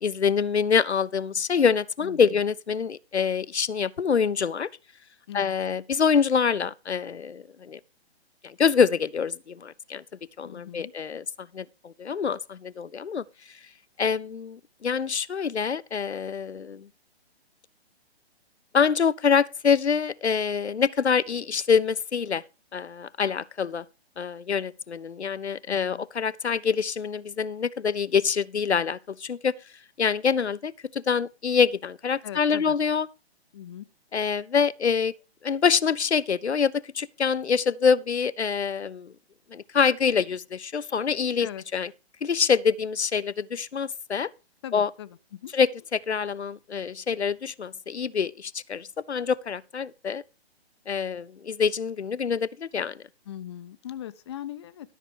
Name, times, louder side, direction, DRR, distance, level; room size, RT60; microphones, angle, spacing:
voice 1, 0.0-4.7 5.3-7.8 8.4-10.0 10.4-11.2 11.5-13.2 14.0-16.9 18.7-22.4 22.7-23.8 24.2-29.6 30.0-33.1 34.1-35.1 35.4-39.1 39.5-41.9 42.2-44.3 44.7-44.9 45.5-50.2 50.9-53.0, left 6 dB, 85° left, 0.6 m, -25 dB
voice 2, 2.0-2.4 5.3-5.5 10.4-10.9 25.7-26.1 32.2-32.8 33.5-33.9 41.4-41.6 44.6-45.5 53.3-54.9, left 11 dB, 25° left, 0.5 m, -40 dB
13.0 x 5.9 x 5.2 m
figure-of-eight pair, 130°, 32 cm